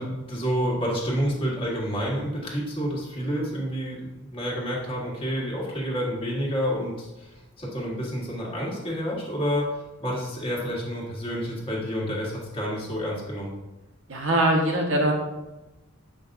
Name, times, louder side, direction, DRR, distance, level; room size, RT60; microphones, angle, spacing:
voice 1, 0.0-9.7 10.0-13.5, equal, 25° left, -4 dB, 1.5 m, -29 dB
voice 2, 14.1-15.1, right 1 dB, 75° right, 0 dB, 1.3 m, -22 dB
7.7 x 5.2 x 2.6 m, 1.0 s
head